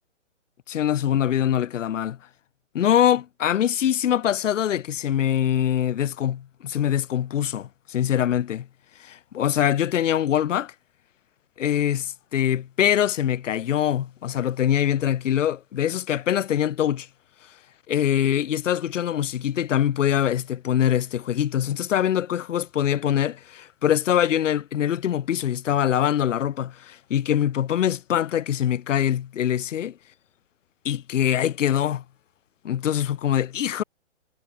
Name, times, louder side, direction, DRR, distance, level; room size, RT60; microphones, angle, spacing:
voice 1, 0.7-2.2 2.7-8.7 9.0-10.7 11.6-17.1 17.9-29.9 30.8-32.0 32.6-33.8, left 10 dB, 80° left, 0.6 m, -23 dB
hypercardioid pair, 180°, 37 cm